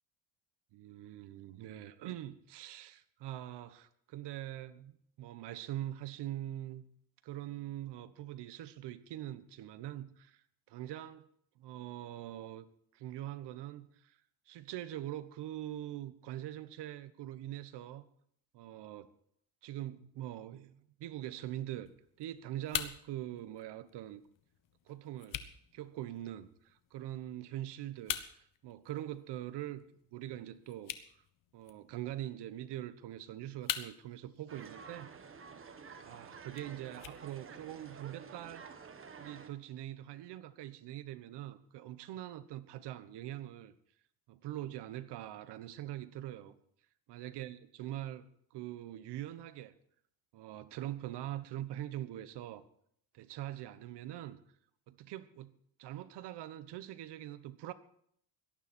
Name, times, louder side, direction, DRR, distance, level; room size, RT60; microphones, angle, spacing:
voice 1, 0.7-4.9 5.2-6.8 7.2-11.3 11.6-12.7 12.9-14.2 14.5-18.0 18.5-19.1 19.6-21.9 22.2-24.2 24.9-25.4 25.7-29.8 30.1-30.9 31.5-35.1 36.0-38.7 39.2-43.7 44.3-46.5 47.1-49.7 50.3-52.6 53.1-54.4 54.9-55.5 55.8-57.7, right 13 dB, 65° right, 1.3 m, -43 dB
sound 1, 21.8-37.8, left 10 dB, 45° left, 1.3 m, -46 dB
sound 2, 34.5-39.5, right 5 dB, 30° right, 1.6 m, -50 dB
18.0 x 12.5 x 4.4 m
cardioid pair, 125°, 44 cm